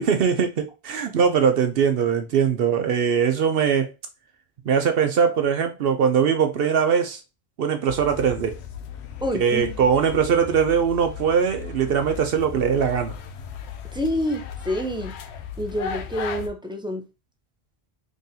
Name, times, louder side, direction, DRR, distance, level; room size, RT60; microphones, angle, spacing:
voice 1, 0.0-3.9 4.7-7.2 7.6-8.6 9.3-13.2, right 7 dB, 65° right, 0.8 m, -21 dB
sound 1, 7.9-16.5, left 7 dB, 80° left, 0.9 m, -36 dB
voice 2, 9.2-9.8 13.9-15.2 15.6-17.1, equal, 5° right, 0.5 m, -28 dB
3.8 x 3.5 x 2.8 m
omnidirectional pair, 1.1 m